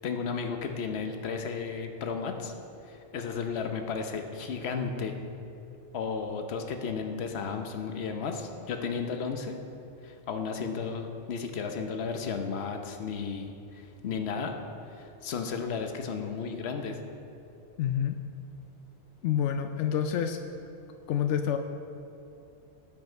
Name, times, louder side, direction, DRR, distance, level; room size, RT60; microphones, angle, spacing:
voice 1, 0.0-2.5 2.8-5.1 5.9-9.6 10.0-14.6 14.9-17.0, left 5 dB, 65° left, 5 dB, 1.1 m, -34 dB
voice 2, 17.8-18.2 19.2-20.4 21.1-21.6, left 9 dB, 90° left, 6 dB, 0.9 m, -27 dB
17.0 x 5.9 x 4.5 m, 2.6 s
omnidirectional pair, 1.2 m